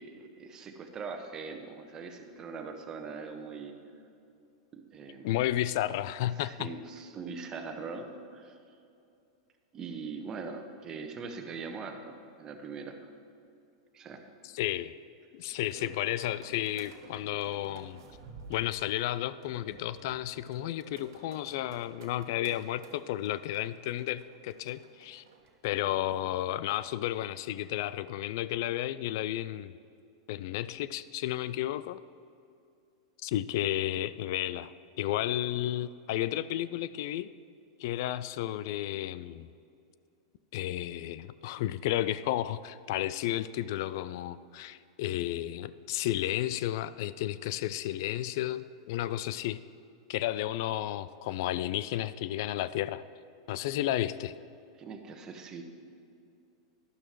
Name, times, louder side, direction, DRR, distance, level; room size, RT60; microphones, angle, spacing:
voice 1, 0.0-3.7 4.7-5.3 6.4-8.6 9.7-13.0 13.9-14.2 54.8-55.6, right 4 dB, 30° right, 5 dB, 1.2 m, -41 dB
voice 2, 5.2-6.7 14.4-14.9 15.3-18.0 18.5-25.2 25.6-29.7 30.3-32.0 33.2-34.7 35.0-37.3 37.8-39.5 40.5-49.6 50.1-53.0 53.5-54.3, left 13 dB, 55° left, 16 dB, 0.3 m, -32 dB
sound 1, 15.4-25.5, right 4 dB, 65° right, 1.4 m, -52 dB
12.0 x 11.5 x 3.1 m, 2.5 s
hypercardioid pair, 95°, 2 cm